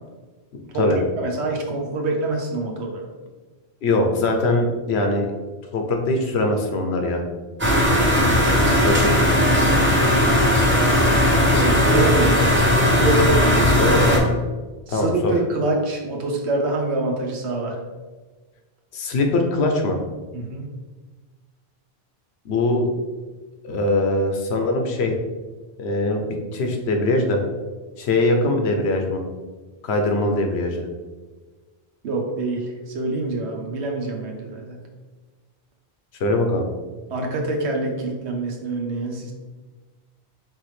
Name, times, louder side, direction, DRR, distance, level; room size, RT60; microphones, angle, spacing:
voice 1, 0.7-3.1 8.5-8.8 11.5-13.7 14.9-17.8 20.3-20.7 32.0-34.8 37.1-39.3, right 2 dB, 85° right, 1 dB, 1.1 m, -25 dB
voice 2, 3.8-5.3 5.7-7.2 8.6-9.4 13.8-14.2 14.9-15.3 18.9-20.0 22.4-22.9 23.6-25.1 25.8-27.4 28.0-29.2 29.8-30.9 36.2-36.6, left 2 dB, 80° left, 3 dB, 1.0 m, -22 dB
sound 1, 7.6-14.2, left 1 dB, 15° right, 0.7 m, -17 dB
4.7 x 3.3 x 3.2 m, 1.3 s
omnidirectional pair, 1.1 m